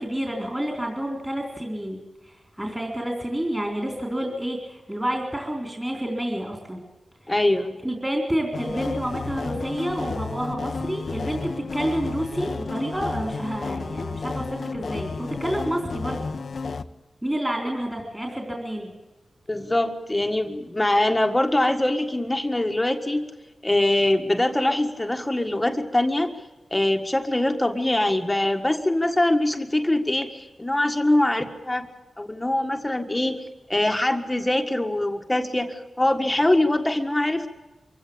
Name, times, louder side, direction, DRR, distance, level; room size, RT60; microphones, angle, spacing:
voice 1, 0.0-6.8 7.8-16.2 17.2-18.9, right 1 dB, 15° right, 1 dB, 4.0 m, -29 dB
voice 2, 7.3-7.8 19.5-23.2 23.6-26.3 26.7-31.9 32.2-33.4 33.7-37.5, left 1 dB, 15° left, 5 dB, 1.7 m, -23 dB
sound 1, 8.5-16.8, left 4 dB, 60° left, 0.9 m, -32 dB
24.5 x 15.5 x 8.7 m, 1.1 s
wide cardioid pair, 90°, 0 cm